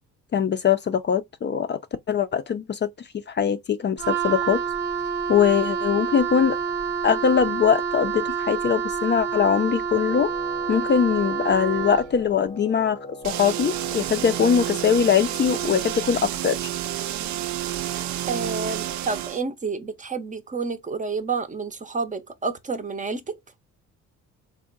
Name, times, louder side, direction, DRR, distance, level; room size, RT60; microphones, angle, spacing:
voice 1, 0.3-1.8 2.1-2.9 3.3-4.6 5.3-6.6 7.0-10.3 10.7-13.0 13.2-16.7, left 7 dB, 35° left, 0.4 m, -22 dB
Wind instrument woodwind instrument, 4.0-12.1, right 6 dB, 85° right, 0.8 m, -28 dB
Wind instrument woodwind instrument 2, 10.0-15.7, left 2 dB, 15° left, 0.8 m, -42 dB
sound 1, 13.2-19.4, right 13 dB, 65° right, 0.4 m, -30 dB
voice 2, 18.3-23.3, right 4 dB, 25° right, 0.6 m, -29 dB
3.5 x 2.2 x 3.8 m
cardioid pair, 90°, 30 cm